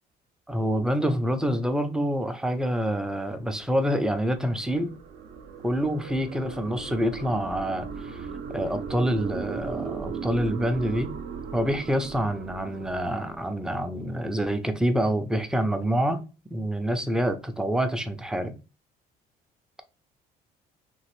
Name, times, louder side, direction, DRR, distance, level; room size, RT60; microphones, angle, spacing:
voice 1, 0.5-4.9 5.6-8.3 8.5-11.1 11.5-16.2 16.5-18.5, equal, 5° right, 0.4 m, -27 dB
sound 1, 3.5-13.8, right 6 dB, 60° right, 0.5 m, -38 dB
3.0 x 2.4 x 3.0 m
cardioid pair, 110°, 17 cm